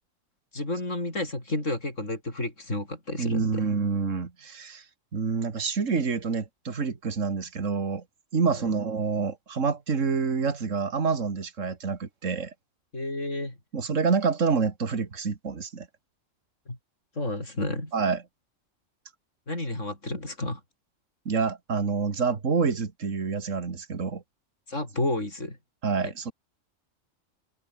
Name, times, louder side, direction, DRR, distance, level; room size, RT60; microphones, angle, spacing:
voice 1, 0.5-3.6 8.5-8.7 12.9-13.6 16.7-16.8 17.2-17.9 19.5-20.6 24.7-25.6 26.0-26.1, left 2 dB, 70° left, 7.2 m, -31 dB
voice 2, 3.2-4.8 5.1-8.0 8.3-12.5 13.7-15.9 17.9-18.2 21.3-24.2 25.8-26.3, right 5 dB, 75° right, 2.4 m, -27 dB
omnidirectional pair, 1.3 m